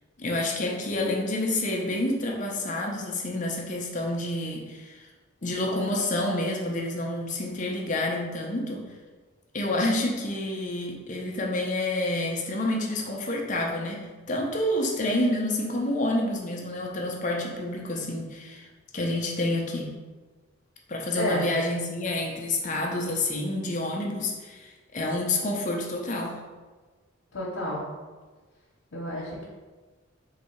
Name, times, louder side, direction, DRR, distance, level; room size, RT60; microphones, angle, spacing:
voice 1, 0.2-5.1 5.4-8.8 9.5-18.7 18.9-19.9 20.9-26.4, left 1 dB, 40° left, 0 dB, 0.6 m, -28 dB
voice 2, 27.3-27.9 28.9-29.4, equal, 80° left, -6 dB, 0.9 m, -30 dB
3.9 x 2.7 x 4.4 m, 1.3 s
head